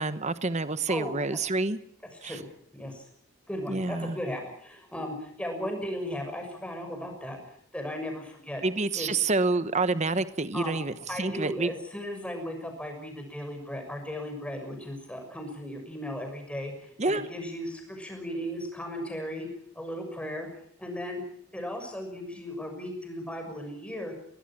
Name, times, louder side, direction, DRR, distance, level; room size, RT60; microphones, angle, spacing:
voice 1, 0.0-1.8 2.2-2.4 3.7-4.2 8.6-11.7 17.0-17.2, right 3 dB, 35° right, 13 dB, 1.0 m, -28 dB
voice 2, 2.7-3.0 3.5-8.6 8.9-9.1 10.5-10.8 11.1-19.5 19.7-20.5 20.8-21.2 21.5-24.1, equal, 5° left, 3 dB, 6.5 m, -36 dB
22.0 x 20.5 x 7.4 m, 0.67 s
head